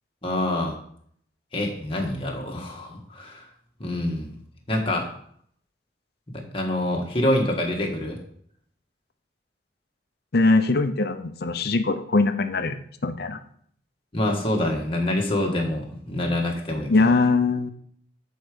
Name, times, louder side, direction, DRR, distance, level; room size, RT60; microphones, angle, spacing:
voice 1, 0.2-0.7 1.5-3.5 3.8-4.3 4.7-5.1 6.3-8.2 14.1-16.9, left 1 dB, 30° left, 0 dB, 1.7 m, -26 dB
voice 2, 10.3-13.4 16.9-17.7, left 3 dB, 55° left, 9 dB, 0.7 m, -21 dB
10.5 x 4.8 x 5.1 m, 0.64 s
head